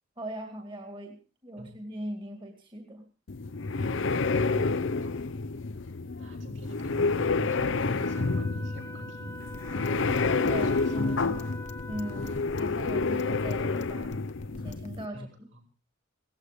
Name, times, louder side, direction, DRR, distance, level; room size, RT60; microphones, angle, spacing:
voice 1, 0.2-1.2 1.4-3.1 10.3-11.4 11.9-14.1 14.5-15.5, right 1 dB, 25° right, 4 dB, 2.1 m, -39 dB
sound 1, 3.3-15.1, left 4 dB, 70° left, 0.7 m, -29 dB
voice 2, 3.8-4.6 5.0-5.1 6.1-9.4 9.7-10.2 10.6-11.5 15.1-15.6, equal, 75° right, -1 dB, 7.7 m, -46 dB
Wind instrument woodwind instrument, 8.0-12.6, left 1 dB, 15° left, 1.3 m, -45 dB
sound 2, 9.5-14.9, left 2 dB, 35° left, 1.0 m, -47 dB
17.5 x 15.0 x 5.1 m, 0.37 s
head